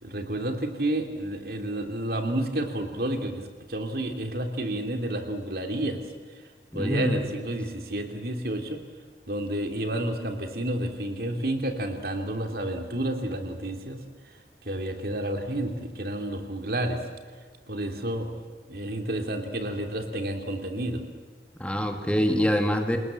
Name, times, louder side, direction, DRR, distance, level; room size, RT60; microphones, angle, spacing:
voice 1, 0.0-6.0 6.7-8.8 9.3-14.0 14.6-17.0 17.7-18.4 18.7-21.0, right 1 dB, 55° right, 5 dB, 3.1 m, -30 dB
voice 2, 6.7-7.2 21.6-23.0, equal, 5° left, 4 dB, 2.1 m, -25 dB
27.5 x 21.0 x 7.7 m, 1.5 s
head